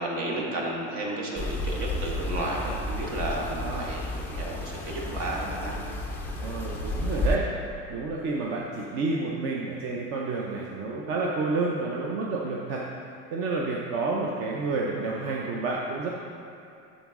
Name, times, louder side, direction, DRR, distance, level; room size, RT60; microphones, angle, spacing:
voice 1, 0.0-5.7, right 1 dB, 55° right, -2 dB, 1.6 m, -32 dB
sound 1, 1.4-7.4, left 1 dB, 5° left, 0.3 m, -32 dB
voice 2, 3.4-3.9 6.4-7.5 7.9-12.8 13.3-16.1, right 3 dB, 40° right, -3 dB, 0.6 m, -30 dB
12.0 x 4.1 x 3.6 m, 2.6 s
cardioid pair, 160°, 35 cm